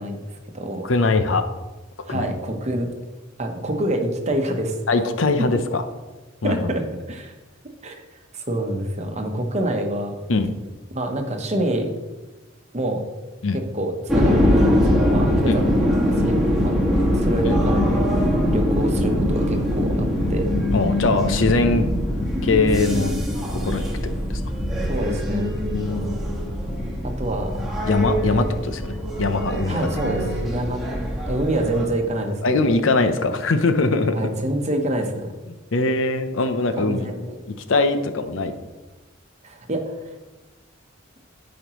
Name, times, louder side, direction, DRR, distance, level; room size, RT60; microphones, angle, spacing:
voice 1, 0.0-0.9 2.0-2.9 3.4-4.8 6.4-7.3 7.8-8.0 8.3-10.2 10.9-12.0 12.7-13.1 13.5-20.5 24.8-25.5 27.0-27.6 28.3-28.5 29.7-32.4 34.1-35.3 36.8-37.4 39.4-40.2, right 1 dB, 35° right, 4 dB, 1.0 m, -27 dB
voice 2, 0.8-1.4 2.1-2.3 4.9-5.8 6.4-6.7 10.3-10.5 13.4-13.6 15.5-15.6 20.7-21.9 22.4-23.1 23.6-23.8 24.3-24.4 25.7-26.1 27.9-29.9 32.4-34.2 35.5-37.1 37.7-38.5, left 3 dB, 75° left, 8 dB, 0.7 m, -21 dB
sound 1, 14.1-31.9, equal, ahead, 1.6 m, -22 dB
13.0 x 5.2 x 3.0 m, 1.2 s
head